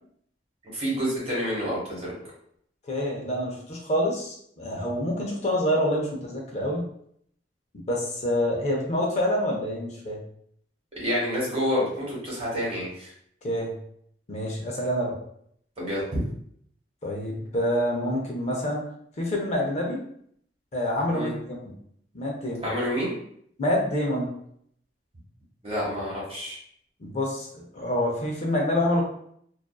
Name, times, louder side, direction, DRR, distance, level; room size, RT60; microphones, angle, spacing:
voice 1, 0.7-2.1 10.9-13.1 15.8-16.2 21.1-21.3 22.6-23.1 25.6-26.6, equal, 35° right, -5 dB, 1.1 m, -28 dB
voice 2, 2.9-6.8 7.9-10.2 13.4-13.8 14.3-15.1 17.0-18.8 19.2-20.0 20.7-21.6 22.1-22.7 23.6-24.3 27.0-29.0, equal, 40° left, -1 dB, 0.5 m, -27 dB
2.5 x 2.3 x 2.2 m, 0.67 s
head